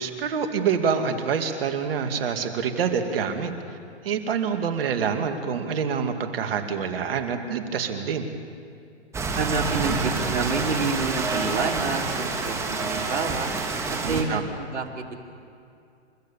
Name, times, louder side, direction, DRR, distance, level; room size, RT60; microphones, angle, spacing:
voice 1, 0.0-3.8 4.0-8.3 14.0-14.4, right 6 dB, 55° right, 6 dB, 2.4 m, -26 dB
Rain, 9.1-14.2, right 4 dB, 10° right, 1.6 m, -28 dB
voice 2, 9.3-13.5 13.9-15.1, right 4 dB, 85° right, 1 dB, 3.2 m, -28 dB
30.0 x 14.5 x 7.1 m, 2.5 s
hypercardioid pair, 145°, 35 cm